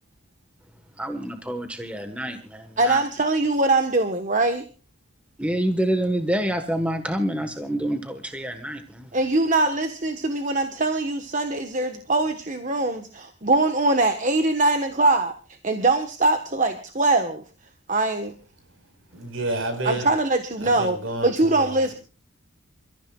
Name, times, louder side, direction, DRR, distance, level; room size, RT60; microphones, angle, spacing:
voice 1, 1.0-3.0 5.4-9.1, right 1 dB, 5° right, 7 dB, 1.3 m, -27 dB
voice 2, 2.8-4.6 9.1-15.3 15.6-17.4 17.9-18.3 19.8-21.0 21.2-21.9, right 2 dB, 35° right, 7 dB, 1.2 m, -22 dB
voice 3, 19.1-20.2 20.6-21.9, right 2 dB, 65° right, 7 dB, 4.8 m, -30 dB
28.5 x 14.5 x 2.4 m, 0.36 s
head